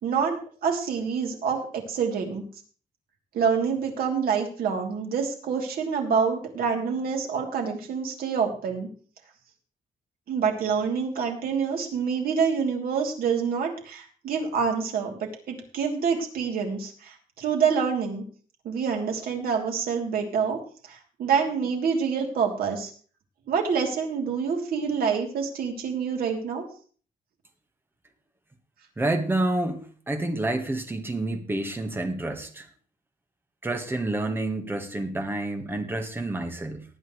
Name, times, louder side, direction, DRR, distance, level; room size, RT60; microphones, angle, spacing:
voice 1, 0.0-2.4 3.3-8.9 10.3-18.2 18.6-22.9 23.5-26.6, right 6 dB, 75° right, 2 dB, 3.2 m, -27 dB
voice 2, 29.0-32.7 33.6-36.8, right 2 dB, 15° right, 6 dB, 1.5 m, -29 dB
19.0 x 9.3 x 3.2 m, 0.42 s
wide cardioid pair, 175°, 15 cm